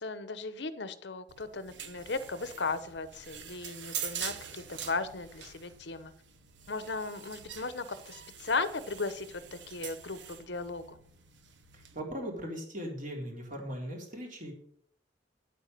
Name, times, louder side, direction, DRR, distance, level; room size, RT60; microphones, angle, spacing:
voice 1, 0.0-6.1 6.7-11.0, left 3 dB, 65° left, 13 dB, 0.9 m, -36 dB
sound 1, 1.3-12.0, right 8 dB, 70° right, 1.2 m, -44 dB
voice 2, 11.7-14.5, equal, 45° right, 1 dB, 3.6 m, -39 dB
10.0 x 8.4 x 6.7 m, 0.63 s
head